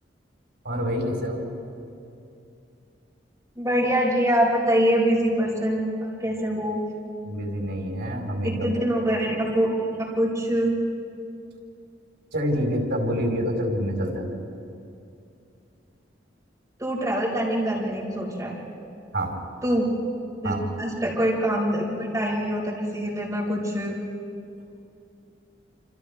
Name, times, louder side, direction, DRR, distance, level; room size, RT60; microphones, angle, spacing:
voice 1, 0.6-1.4 7.2-8.7 12.3-14.3 19.1-19.4 20.4-20.6, equal, 75° right, -1 dB, 4.7 m, -27 dB
voice 2, 3.6-6.8 8.4-10.7 16.8-18.5 19.6-19.9 20.4-24.0, equal, 15° right, -6 dB, 5.3 m, -24 dB
28.5 x 27.5 x 3.6 m, 2.6 s
head